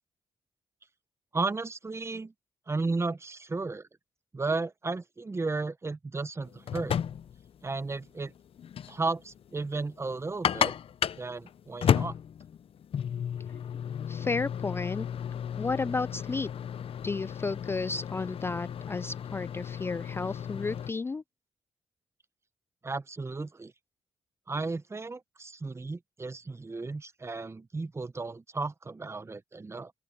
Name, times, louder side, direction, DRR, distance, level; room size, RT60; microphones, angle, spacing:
voice 1, 1.3-2.3 2.7-3.9 4.3-7.0 7.6-8.3 8.9-10.7 11.2-12.1 22.8-23.7 24.5-29.9, right 3 dB, 25° right, 0.8 m, -34 dB
sound 1, 6.4-20.9, left 8 dB, 60° left, 0.6 m, -33 dB
voice 2, 14.1-15.1 15.6-16.5 17.0-21.2, left 4 dB, 20° left, 0.3 m, -32 dB
open air
cardioid pair, 90°, 11 cm